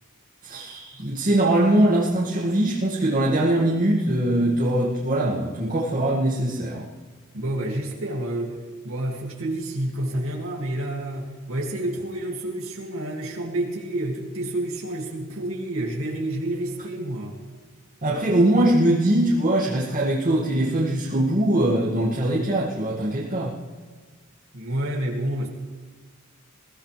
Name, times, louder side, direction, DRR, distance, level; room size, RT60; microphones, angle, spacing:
voice 1, 0.4-6.9 18.0-23.5, right 1 dB, 40° right, -7 dB, 2.2 m, -22 dB
voice 2, 7.3-17.4 24.5-25.5, right 1 dB, 70° right, -1 dB, 2.5 m, -29 dB
22.5 x 16.0 x 3.4 m, 1.5 s
head